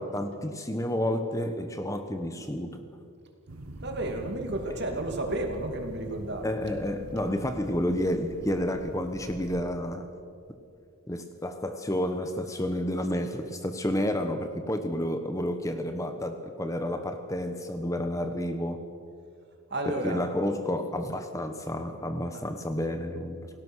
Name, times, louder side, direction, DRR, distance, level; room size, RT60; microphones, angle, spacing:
voice 1, 0.0-2.8 4.7-4.8 6.4-10.1 11.1-18.8 19.9-23.5, left 1 dB, 15° left, 7 dB, 1.1 m, -30 dB
sound 1, 3.5-9.6, right 1 dB, 75° right, 1.4 m, -44 dB
voice 2, 3.8-6.5 19.7-20.2 22.3-22.5, right 2 dB, 50° right, 4 dB, 2.7 m, -32 dB
28.5 x 18.0 x 6.4 m, 2.4 s
head